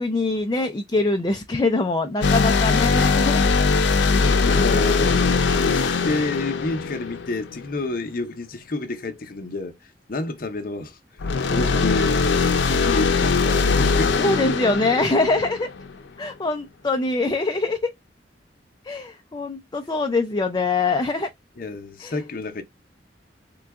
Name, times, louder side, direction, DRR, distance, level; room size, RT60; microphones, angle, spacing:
voice 1, 0.0-3.5 14.2-15.7 16.2-17.9 18.8-21.3 22.0-22.1, left 3 dB, 25° left, 0.4 m, -23 dB
sound 1, 2.2-7.7 11.2-16.0, left 4 dB, 90° left, 0.6 m, -21 dB
voice 2, 4.4-5.2 5.5-14.3 21.6-22.6, left 2 dB, 50° left, 0.7 m, -30 dB
3.8 x 2.3 x 3.4 m
head